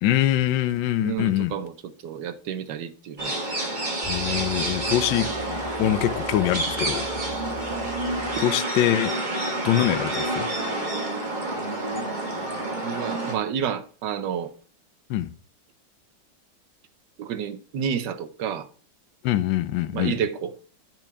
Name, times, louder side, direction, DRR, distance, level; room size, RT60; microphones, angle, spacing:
voice 1, 0.0-1.5 4.0-5.3 5.8-7.0 8.4-9.1 9.6-10.5 15.1-15.3 19.2-20.1, left 13 dB, 85° left, 1.3 m, -23 dB
voice 2, 1.0-3.4 12.8-14.5 17.2-18.7 19.9-20.5, right 8 dB, 75° right, 1.3 m, -30 dB
sound 1, 3.2-13.3, right 2 dB, 25° right, 1.8 m, -28 dB
sound 2, 4.0-8.4, left 1 dB, 25° left, 2.2 m, -41 dB
9.1 x 4.6 x 5.8 m
omnidirectional pair, 2.0 m